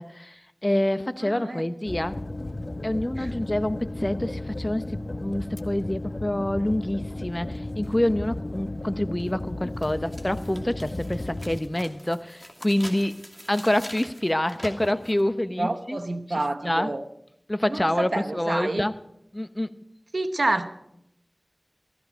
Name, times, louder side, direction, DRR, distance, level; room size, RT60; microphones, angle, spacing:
voice 1, 0.0-2.2 2.8-13.2 13.5-16.0 16.3-16.9 17.5-19.0 19.3-19.7, left 1 dB, 25° left, 12 dB, 0.7 m, -27 dB
voice 2, 1.2-1.6 3.2-3.3 15.6-17.0 17.7-18.9 20.1-20.7, right 2 dB, 80° right, 9 dB, 0.9 m, -28 dB
sound 1, 1.9-11.6, left 2 dB, 65° left, 1.0 m, -34 dB
sound 2, 9.2-9.3 9.8-15.2, equal, 10° left, 2.6 m, -43 dB
15.5 x 14.0 x 5.1 m, 0.79 s
wide cardioid pair, 45°, 0 cm